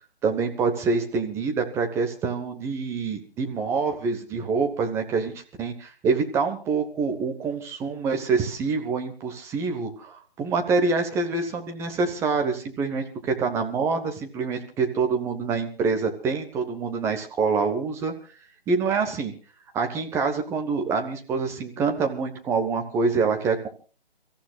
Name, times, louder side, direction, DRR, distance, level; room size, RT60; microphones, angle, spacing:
voice 1, 0.2-5.3 5.6-18.1 18.7-19.3 19.7-23.7, right 4 dB, 10° right, 4 dB, 1.2 m, -26 dB
30.0 x 14.5 x 2.4 m, 0.38 s
figure-of-eight pair, 150°, 31 cm